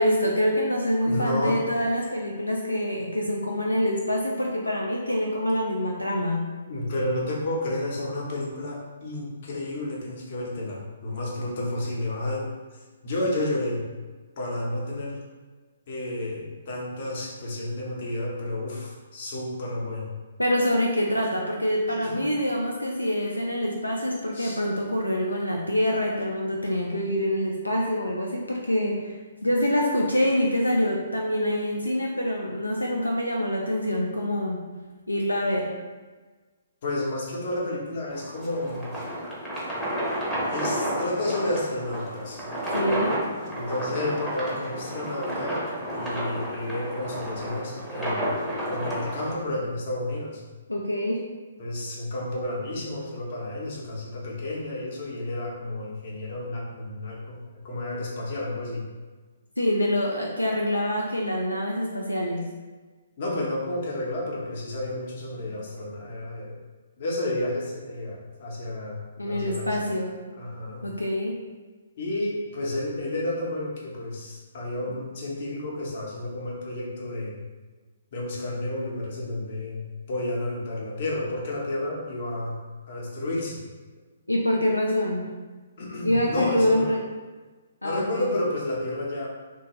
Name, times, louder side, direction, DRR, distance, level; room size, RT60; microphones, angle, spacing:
voice 1, 0.0-6.5 20.4-29.1 29.4-34.6 35.1-35.7 42.7-43.2 50.7-51.3 59.6-62.5 69.2-70.1 70.8-71.4 84.3-85.3 86.0-87.0 87.8-88.3, equal, 85° left, -1 dB, 0.3 m, -25 dB
voice 2, 1.0-1.6 6.7-12.5 12.7-13.8 14.4-15.2 15.9-20.1 21.9-22.2 24.3-24.6 36.8-38.9 40.5-42.4 43.5-45.6 45.9-50.4 51.6-57.4 57.6-58.9 63.2-66.6 67.0-69.9 70.3-70.8 72.0-77.4 78.1-82.6 82.9-83.6 85.8-86.9 87.8-89.3, left 1 dB, 45° left, -4 dB, 0.8 m, -31 dB
sound 1, 38.1-49.4, equal, ahead, 0.7 m, -31 dB
2.9 x 2.1 x 3.0 m, 1.3 s
figure-of-eight pair, 130°, 0 cm